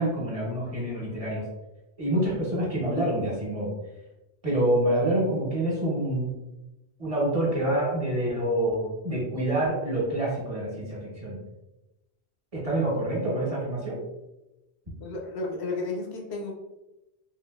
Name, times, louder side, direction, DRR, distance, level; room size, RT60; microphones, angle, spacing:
voice 1, 0.0-1.4 2.0-3.7 4.4-6.3 7.0-11.4 12.5-14.0, right 1 dB, 35° right, -5 dB, 1.1 m, -27 dB
voice 2, 15.0-16.5, left 3 dB, 80° left, 0 dB, 0.9 m, -32 dB
3.6 x 2.5 x 2.3 m, 0.97 s
omnidirectional pair, 1.1 m